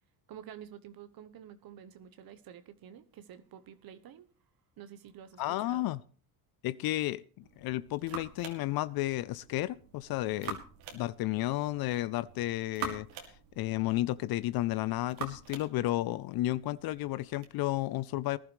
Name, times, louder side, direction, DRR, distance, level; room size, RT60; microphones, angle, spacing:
voice 1, 0.3-4.3 4.8-5.9, right 9 dB, 50° right, 1.0 m, -49 dB
voice 2, 5.4-6.0 6.6-10.6 10.9-18.4, left 16 dB, 55° left, 0.5 m, -32 dB
sound 1, 7.4-17.5, right 5 dB, 85° right, 2.5 m, -46 dB
19.5 x 11.5 x 3.1 m
supercardioid pair, 95°, 45 cm